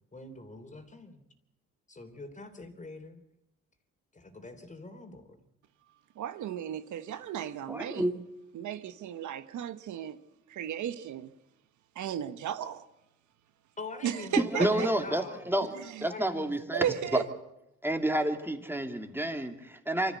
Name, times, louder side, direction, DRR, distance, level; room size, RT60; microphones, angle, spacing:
voice 1, 0.1-1.2 1.9-3.2 4.1-5.3 13.8-15.5 16.1-16.9 17.1-17.3, left 2 dB, 25° left, 3.3 m, -44 dB
voice 2, 6.2-8.1 8.5-10.2 10.5-11.3 11.9-12.8 14.0-14.9 15.8-16.1 16.7-17.3, right 10 dB, 75° right, 1.2 m, -35 dB
voice 3, 7.7-8.1 14.6-16.8 17.8-20.2, right 1 dB, 5° right, 2.5 m, -30 dB
25.0 x 14.0 x 8.3 m
cardioid pair, 90°, 30 cm